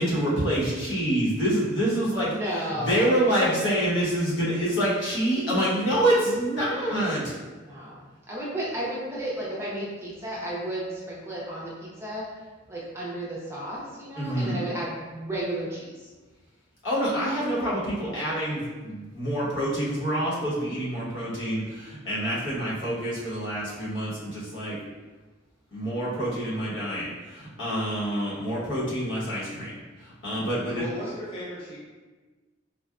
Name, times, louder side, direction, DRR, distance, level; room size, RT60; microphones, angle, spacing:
voice 1, 0.0-2.4 2.9-7.3 14.2-14.6 16.8-24.8 25.7-29.7 30.2-30.8, right 1 dB, 65° left, -8 dB, 1.1 m, -26 dB
voice 2, 2.3-3.2 7.6-12.4 12.7-16.1, right 1 dB, 15° right, -6 dB, 0.5 m, -33 dB
voice 3, 30.5-31.8, left 1 dB, 30° left, -7 dB, 0.6 m, -37 dB
4.0 x 2.1 x 2.4 m, 1.3 s
head